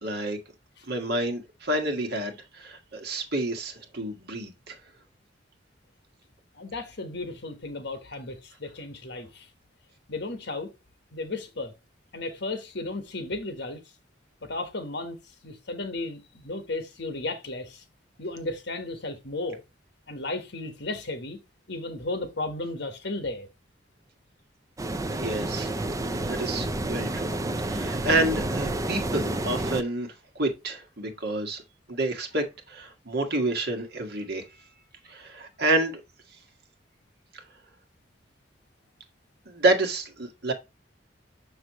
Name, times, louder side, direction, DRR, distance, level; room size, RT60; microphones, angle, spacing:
voice 1, 0.0-0.4 0.9-4.8 25.1-25.7 26.0-27.3 27.6-31.6 31.9-34.4 35.1-36.0 37.3-37.4 39.5-40.5, right 2 dB, 60° right, 1.7 m, -29 dB
voice 2, 6.5-9.5 10.1-10.7 11.1-11.7 12.1-13.8 14.4-17.8 18.2-19.6 20.1-21.4 21.7-23.5, left 2 dB, 65° left, 1.4 m, -34 dB
sound 1, 24.8-29.8, right 1 dB, 20° right, 0.5 m, -30 dB
6.4 x 6.0 x 3.0 m
head